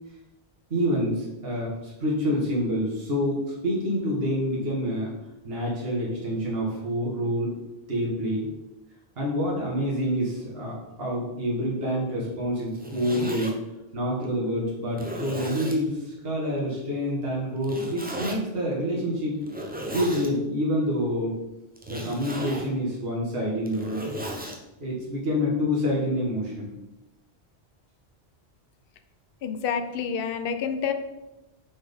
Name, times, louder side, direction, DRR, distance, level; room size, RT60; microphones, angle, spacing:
voice 1, 0.7-3.4 3.6-5.1 5.4-7.5 7.9-8.5 9.2-13.5 13.9-19.4 19.9-21.4 21.9-24.1 24.8-26.7, equal, 65° right, -4 dB, 1.8 m, -27 dB
Zipper (clothing), 12.6-13.5 14.2-14.3 14.9-15.8 17.6-18.4 19.4-20.3 21.8-22.7 23.5-24.6, equal, 10° right, 0.7 m, -35 dB
voice 2, 29.4-30.9, left 7 dB, 65° left, 8 dB, 0.8 m, -28 dB
6.2 x 4.2 x 5.1 m, 0.99 s
omnidirectional pair, 1.1 m